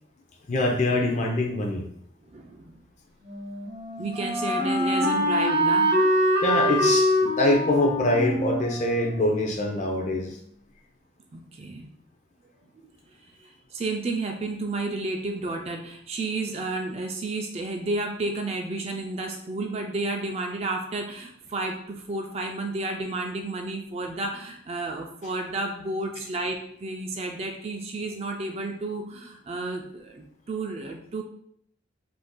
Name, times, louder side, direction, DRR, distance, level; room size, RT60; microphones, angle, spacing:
voice 1, 0.5-1.8 6.4-10.4, left 1 dB, 40° left, 2 dB, 0.4 m, -24 dB
voice 2, 2.3-2.8 4.0-5.9 11.3-11.9 12.8-12.9 13.4-31.2, right 2 dB, 30° right, 2 dB, 0.3 m, -31 dB
Wind instrument woodwind instrument, 3.2-10.1, equal, 55° right, 0.7 m, -25 dB
2.5 x 2.3 x 3.5 m, 0.67 s
head